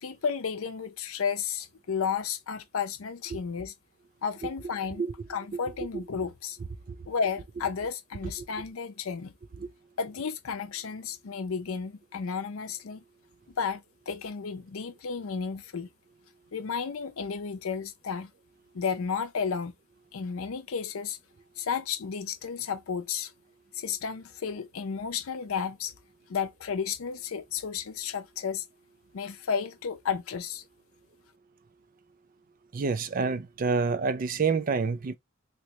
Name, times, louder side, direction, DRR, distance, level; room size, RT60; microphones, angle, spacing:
voice 1, 0.0-3.7 4.2-5.0 5.3-6.6 7.1-9.3 10.0-13.0 13.6-15.9 16.5-18.3 18.7-19.7 20.1-21.2 21.6-23.3 23.7-25.9 26.3-28.6 29.1-30.6, left 6 dB, 80° left, 0.5 m, -32 dB
voice 2, 32.7-35.2, right 5 dB, 40° right, 0.4 m, -28 dB
3.1 x 2.9 x 2.9 m
head